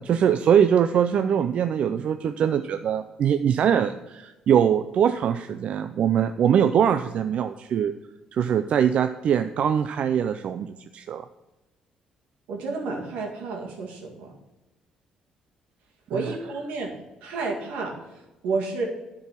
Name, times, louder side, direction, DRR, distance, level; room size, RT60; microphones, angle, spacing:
voice 1, 0.0-7.9 8.3-11.2 16.1-16.5, right 8 dB, 60° right, 10 dB, 0.4 m, -22 dB
voice 2, 12.5-14.3 16.1-16.9 17.2-17.9 18.4-18.9, right 3 dB, 90° right, 0 dB, 2.1 m, -30 dB
10.5 x 4.7 x 6.0 m, 1.1 s
cardioid pair, 90°, 2 cm